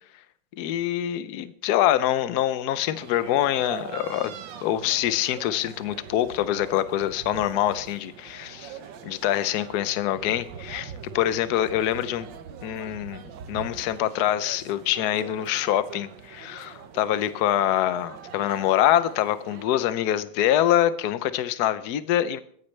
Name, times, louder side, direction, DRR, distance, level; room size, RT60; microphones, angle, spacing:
voice 1, 0.6-4.3 4.6-8.8 9.0-12.3 12.6-22.4, left 12 dB, 65° left, 14 dB, 1.0 m, -25 dB
sound 1, 2.9-19.7, right 7 dB, 65° right, 1.5 m, -43 dB
21.5 x 9.5 x 3.3 m, 0.64 s
omnidirectional pair, 2.3 m